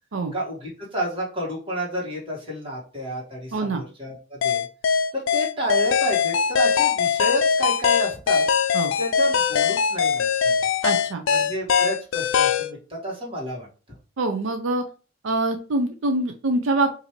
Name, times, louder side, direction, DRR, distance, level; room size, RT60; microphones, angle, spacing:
voice 1, 0.3-4.6 5.1-8.4 9.0-10.7 11.3-13.7, equal, 25° right, -4 dB, 1.7 m, -30 dB
voice 2, 3.5-3.8 8.7-8.9 10.8-11.2 14.2-14.8 15.2-16.9, right 2 dB, 80° right, 6 dB, 0.6 m, -24 dB
sound 1, 4.4-12.7, left 7 dB, 70° left, 0.4 m, -21 dB
5.0 x 2.7 x 3.1 m, 0.36 s
head